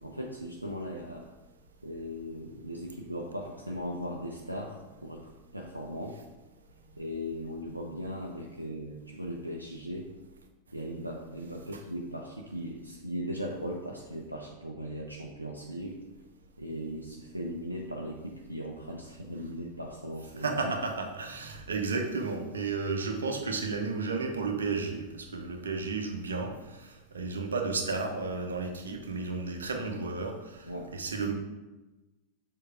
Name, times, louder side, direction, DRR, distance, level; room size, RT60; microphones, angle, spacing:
voice 1, 0.0-1.3 1.8-6.2 7.0-10.1 10.7-16.0 16.6-20.7 30.7-30.9, equal, 85° right, -1 dB, 0.6 m, -38 dB
voice 2, 20.4-31.3, right 4 dB, 70° right, 3 dB, 0.9 m, -33 dB
6.7 x 3.8 x 4.8 m, 1.1 s
figure-of-eight pair, 90°, 0 cm